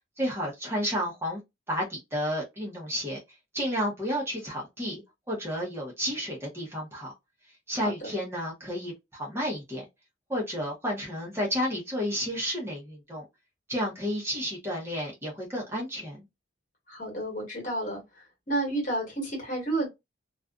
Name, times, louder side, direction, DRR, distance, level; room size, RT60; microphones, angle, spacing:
voice 1, 0.2-1.4 1.7-3.2 3.5-5.0 5.3-7.1 7.7-9.8 10.3-13.2 13.7-16.2, equal, 15° right, 0.8 m, -31 dB
voice 2, 16.9-19.9, right 2 dB, 40° left, 1.3 m, -31 dB
2.4 x 2.3 x 2.2 m
head